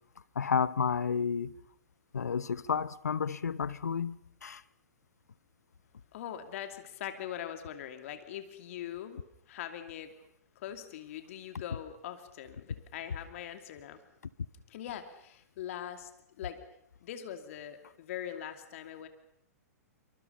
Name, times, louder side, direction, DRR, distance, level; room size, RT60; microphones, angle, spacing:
voice 1, 0.3-1.5 2.1-4.6, left 6 dB, 80° left, 0.9 m, -31 dB
voice 2, 6.1-9.2 9.5-10.1 10.6-14.0 14.7-16.1 16.4-16.6 17.0-19.1, left 10 dB, 55° left, 2.6 m, -42 dB
26.5 x 25.0 x 5.6 m
hypercardioid pair, 115°, 9 cm